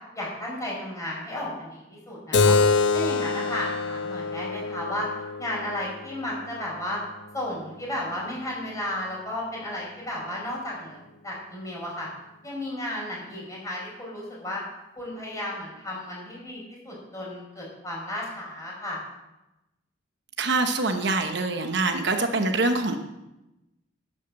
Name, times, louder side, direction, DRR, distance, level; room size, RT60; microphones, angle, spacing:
voice 1, 0.1-2.6 2.9-5.1 5.4-7.0 7.3-11.0 11.2-12.1 12.4-14.6 15.0-19.0, left 1 dB, 15° left, -3 dB, 5.3 m, -33 dB
Keyboard (musical), 2.3-7.4, left 4 dB, 65° left, 0.9 m, -26 dB
voice 2, 20.4-23.0, right 3 dB, 60° right, 6 dB, 1.0 m, -24 dB
11.0 x 9.1 x 7.4 m, 0.98 s
head